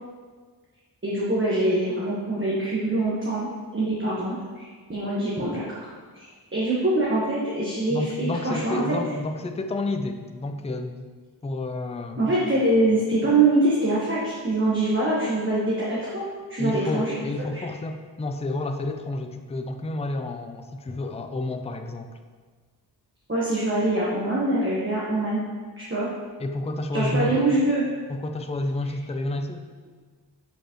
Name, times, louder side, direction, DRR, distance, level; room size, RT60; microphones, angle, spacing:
voice 1, 1.0-6.2 6.5-8.8 12.2-17.1 17.5-17.6 23.3-25.4 25.8-26.1 26.9-27.9, right 2 dB, 30° right, -7 dB, 1.2 m, -24 dB
voice 2, 7.9-11.0 11.4-12.2 16.6-22.2 26.4-27.4 28.1-29.6, left 2 dB, 15° left, 6 dB, 0.4 m, -30 dB
6.7 x 4.9 x 3.0 m, 1.5 s
wide cardioid pair, 65°, 41 cm